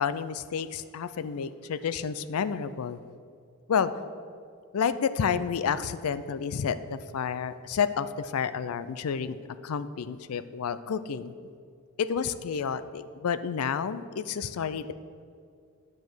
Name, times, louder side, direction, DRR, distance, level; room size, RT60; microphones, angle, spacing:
voice 1, 0.0-3.0 3.7-4.0 4.7-9.4 9.6-11.3 12.0-14.9, left 6 dB, 75° left, 14 dB, 0.4 m, -30 dB
9.5 x 5.1 x 6.1 m, 2.3 s
head